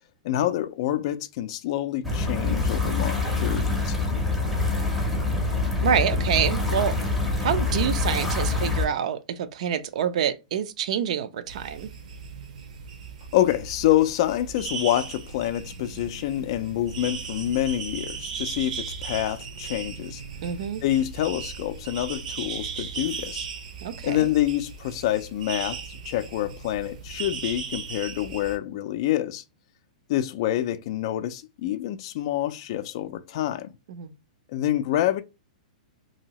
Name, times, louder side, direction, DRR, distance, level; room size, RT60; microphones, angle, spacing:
voice 1, 0.2-4.0 13.3-20.2 20.8-23.5 24.0-29.4 30.1-33.7 34.5-35.2, left 13 dB, 40° left, 0.3 m, -27 dB
sound 1, 2.0-8.9, left 3 dB, ahead, 0.6 m, -25 dB
voice 2, 5.8-7.0 7.4-11.9 20.4-20.8 23.8-24.3 33.9-34.1, right 8 dB, 55° right, 0.4 m, -27 dB
sound 2, 11.5-28.6, right 6 dB, 70° right, 0.8 m, -37 dB
2.9 x 2.7 x 2.8 m
hypercardioid pair, 165°, 4 cm